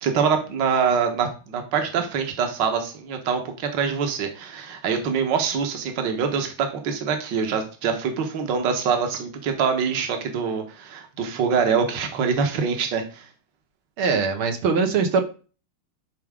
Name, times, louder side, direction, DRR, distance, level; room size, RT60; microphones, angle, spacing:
voice 1, 0.0-13.3, right 6 dB, 60° right, 5 dB, 1.9 m, -24 dB
voice 2, 14.0-15.2, right 5 dB, 80° right, 4 dB, 2.1 m, -21 dB
11.0 x 4.7 x 3.6 m, 0.35 s
omnidirectional pair, 2.3 m